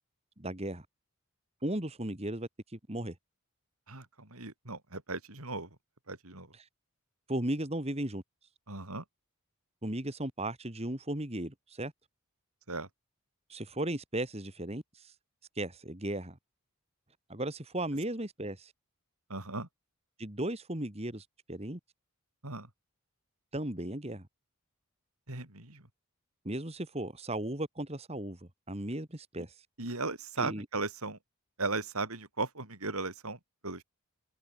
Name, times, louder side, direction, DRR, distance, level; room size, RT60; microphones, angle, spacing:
voice 1, 0.4-0.9 1.6-3.1 6.6-6.7 7.3-8.2 9.8-11.9 13.5-15.1 15.6-16.4 17.3-18.7 20.2-21.8 23.5-24.3 26.4-29.5 30.4-30.7, right 1 dB, 25° right, 2.4 m, -36 dB
voice 2, 3.9-5.7 6.1-6.5 8.7-9.0 12.7-12.9 19.3-19.7 22.4-22.7 25.3-25.8 29.8-31.2 31.6-33.8, right 3 dB, 75° right, 4.6 m, -37 dB
head